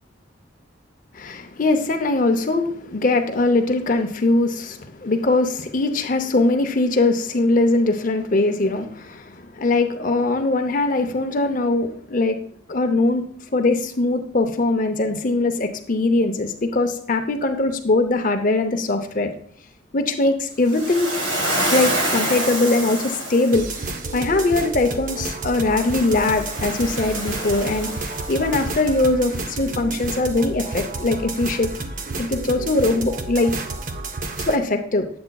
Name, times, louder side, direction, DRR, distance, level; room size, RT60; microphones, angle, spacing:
voice 1, 1.1-12.4 12.7-13.2 13.5-19.3 19.9-21.1 21.7-23.7 24.1-27.9 28.3-31.7 32.2-33.5 34.4-35.1, left 2 dB, 40° left, 7 dB, 0.7 m, -21 dB
Waves surf, 20.7-23.9 25.7-28.7, right 1 dB, 80° right, 1.5 m, -27 dB
sound 1, 23.5-34.6, right 3 dB, 40° right, 0.6 m, -30 dB
8.5 x 7.8 x 2.3 m, 0.62 s
head